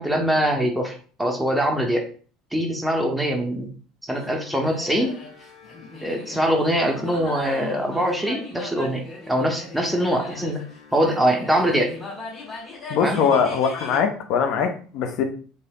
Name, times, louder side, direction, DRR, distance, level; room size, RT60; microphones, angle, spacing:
voice 1, 0.0-2.1 2.5-3.7 4.0-5.2 6.0-10.6 10.9-11.9 13.0-13.2, equal, 5° right, 1 dB, 0.5 m, -23 dB
sound 1, 4.1-14.0, left 2 dB, 35° left, 1.5 m, -38 dB
voice 2, 12.9-15.2, left 6 dB, 55° left, 6 dB, 0.5 m, -22 dB
3.2 x 2.7 x 2.3 m, 0.41 s
figure-of-eight pair, 65°, 0 cm